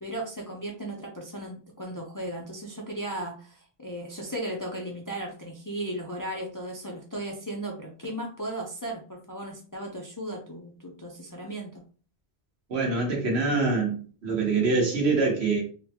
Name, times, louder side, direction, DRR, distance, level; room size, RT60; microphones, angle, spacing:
voice 1, 0.0-11.8, right 1 dB, 30° left, 0.4 m, -36 dB
voice 2, 12.7-14.0 14.2-15.6, right 3 dB, 75° right, 1.4 m, -24 dB
3.9 x 2.2 x 2.8 m
omnidirectional pair, 1.1 m